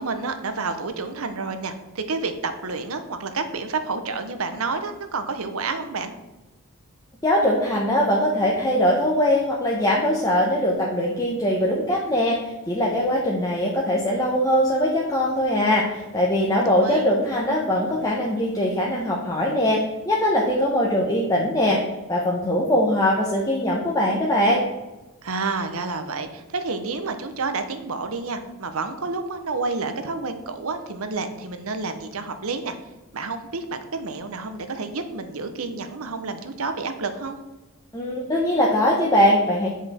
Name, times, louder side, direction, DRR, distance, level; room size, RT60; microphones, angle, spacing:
voice 1, 0.0-6.2 16.5-17.1 25.2-32.8 33.1-37.4, right 4 dB, 70° right, 8 dB, 0.9 m, -29 dB
voice 2, 7.2-21.8 22.1-24.6 37.9-39.7, left 1 dB, 15° left, -4 dB, 0.9 m, -21 dB
8.5 x 5.1 x 4.3 m, 1.1 s
head